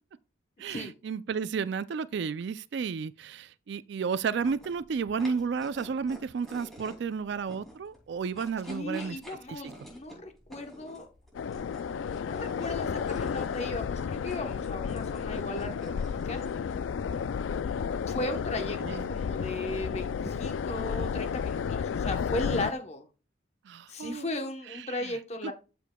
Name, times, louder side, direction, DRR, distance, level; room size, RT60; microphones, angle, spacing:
voice 1, 0.6-9.2 9.5-9.7 18.8-19.1 23.6-24.3 24.7-25.5, right 5 dB, 65° right, 0.3 m, -32 dB
sound 1, 4.3-19.7, equal, ahead, 2.6 m, -51 dB
voice 2, 8.7-11.1 12.2-16.5 18.1-23.1 23.9-25.5, left 1 dB, 35° left, 1.0 m, -36 dB
sound 2, 11.3-22.7, left 6 dB, 80° left, 0.3 m, -32 dB
12.0 x 5.2 x 2.3 m
head